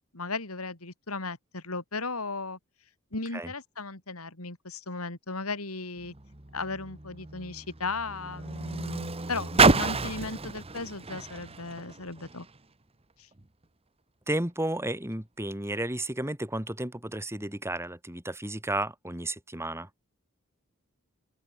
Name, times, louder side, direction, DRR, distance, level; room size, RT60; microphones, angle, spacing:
voice 1, 0.0-2.6 3.1-6.1 6.5-12.5 13.2-13.3, left 3 dB, 75° left, 3.8 m, -36 dB
Car, 6.0-12.6 13.4-13.5, right 4 dB, 25° right, 1.4 m, -29 dB
voice 2, 14.3-19.9, right 1 dB, 10° right, 3.4 m, -33 dB
head